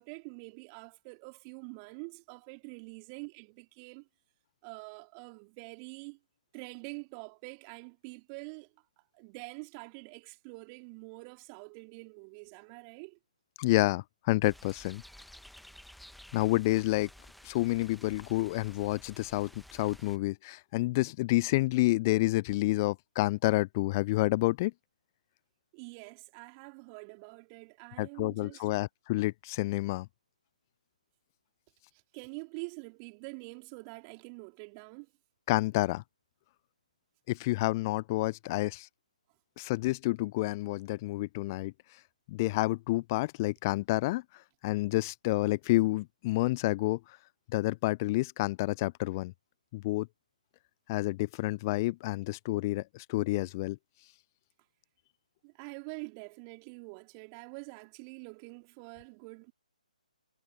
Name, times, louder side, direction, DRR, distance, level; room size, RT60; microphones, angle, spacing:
voice 1, 0.0-4.1 4.6-6.2 6.5-13.2 25.7-28.7 31.9-35.1 55.4-59.5, right 36 dB, 25° right, 3.5 m, -46 dB
voice 2, 13.6-15.0 16.3-17.1 17.4-24.7 28.0-30.1 35.5-36.0 37.3-38.9 39.6-41.7 42.3-44.2 44.6-47.0 47.5-49.3 49.7-50.1 50.9-53.8, left 20 dB, 25° left, 0.5 m, -29 dB
sound 1, 14.4-20.2, left 1 dB, ahead, 1.3 m, -53 dB
figure-of-eight pair, 140°, 4 cm